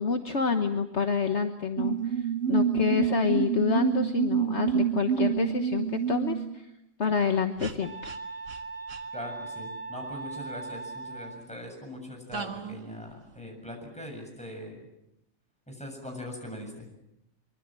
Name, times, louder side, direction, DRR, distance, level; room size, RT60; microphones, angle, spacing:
voice 1, 0.0-2.2 2.5-6.6 7.0-8.1, left 5 dB, 55° left, 6 dB, 1.5 m, -28 dB
sound 1, 1.8-6.6 7.6-7.7 8.0-8.2 8.5-8.6 8.9-9.0 12.3-12.9, right 8 dB, 65° right, 1.9 m, -28 dB
sound 2, 7.8-11.5, right 3 dB, 85° right, 4.3 m, -39 dB
voice 2, 9.1-14.8 15.7-16.9, left 1 dB, 5° left, 2 dB, 7.4 m, -41 dB
24.0 x 24.0 x 7.6 m, 0.84 s
omnidirectional pair, 1.4 m